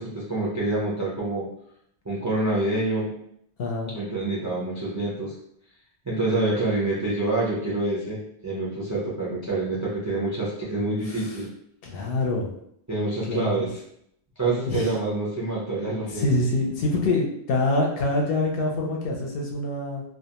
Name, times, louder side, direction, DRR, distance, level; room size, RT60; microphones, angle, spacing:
voice 1, 0.0-1.5 2.0-3.1 3.9-5.3 6.1-11.5 12.9-13.7 14.4-16.3, right 2 dB, 30° right, -6 dB, 0.3 m, -26 dB
voice 2, 3.6-3.9 11.0-11.4 11.8-12.5 13.3-13.7 14.7-14.9 16.1-20.0, left 2 dB, 65° left, 0 dB, 0.7 m, -25 dB
2.3 x 2.2 x 2.8 m, 0.72 s
omnidirectional pair, 1.1 m